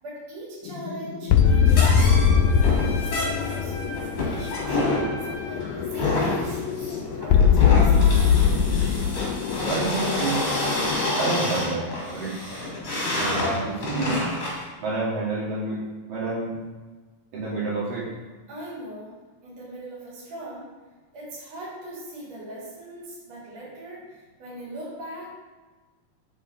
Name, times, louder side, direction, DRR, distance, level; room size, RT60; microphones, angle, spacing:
voice 1, 0.0-2.6 3.0-4.8 5.2-6.6 6.9-8.4 18.5-19.1 19.4-20.7 21.1-25.3, right 1 dB, 55° right, -8 dB, 4.0 m, -40 dB
sound 1, 0.7-11.1, left 7 dB, 85° left, 2.2 m, -22 dB
Trumpet, 1.4-5.7, left 2 dB, 60° left, 2.2 m, -40 dB
sound 2, 1.7-14.6, left 2 dB, 35° left, 2.3 m, -28 dB
voice 2, 9.6-10.5 11.2-12.4 13.2-14.2 14.8-15.8 16.1-16.6 17.3-18.1, right 3 dB, 85° right, -7 dB, 4.1 m, -28 dB
8.5 x 7.0 x 3.5 m, 1.3 s
omnidirectional pair, 3.8 m